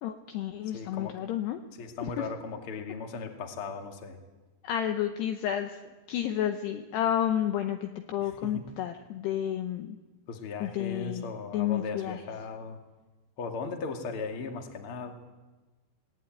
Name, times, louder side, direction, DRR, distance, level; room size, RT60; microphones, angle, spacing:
voice 1, 0.0-1.6 2.2-2.3 4.6-5.8 6.1-10.0 10.6-11.2 11.5-12.2, left 10 dB, 75° left, 6 dB, 2.6 m, -31 dB
voice 2, 0.7-1.1 1.8-4.2 8.2-8.7 10.3-12.8 13.4-15.1, left 4 dB, 40° left, 3 dB, 2.1 m, -37 dB
23.0 x 18.5 x 9.1 m, 1.2 s
omnidirectional pair, 5.6 m